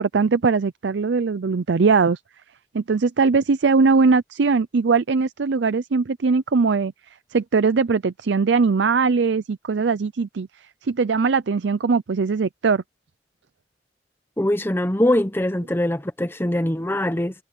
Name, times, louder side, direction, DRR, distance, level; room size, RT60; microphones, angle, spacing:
voice 1, 0.0-2.2 2.7-6.9 7.3-10.5 10.8-12.8, right 4 dB, 85° right, 0.5 m, -20 dB
voice 2, 14.4-17.3, left 1 dB, 15° left, 0.9 m, -22 dB
head